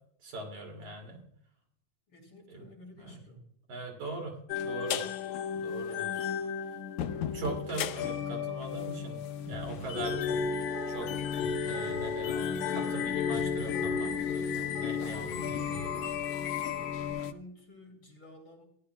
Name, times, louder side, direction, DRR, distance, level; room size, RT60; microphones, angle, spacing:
voice 1, 0.2-1.2 2.5-2.6 3.0-3.2 3.7-4.3 4.6-5.0 5.5-6.3 7.3-9.2 9.5-10.4 10.9-11.1 11.7-15.9, right 2 dB, 70° right, 1 dB, 3.9 m, -41 dB
voice 2, 2.1-3.4 7.1-8.2 16.8-18.6, left 1 dB, 45° left, 1 dB, 3.2 m, -52 dB
sound 1, 4.5-17.3, left 7 dB, 80° left, 2.0 m, -33 dB
sound 2, 9.5-17.1, right 2 dB, 45° right, 4.9 m, -45 dB
17.0 x 11.5 x 2.2 m, 0.68 s
omnidirectional pair, 3.5 m